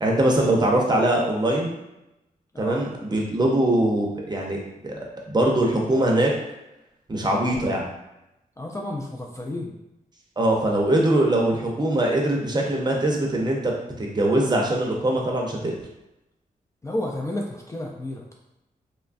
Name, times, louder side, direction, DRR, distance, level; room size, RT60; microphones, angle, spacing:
voice 1, 0.0-1.8 2.6-6.3 7.1-7.9 10.4-15.7, right 1 dB, 30° right, -1 dB, 0.6 m, -22 dB
voice 2, 8.6-9.8 16.8-18.3, left 1 dB, 20° left, -1 dB, 0.3 m, -31 dB
3.0 x 2.2 x 2.4 m, 0.92 s
cardioid pair, 90°, 15 cm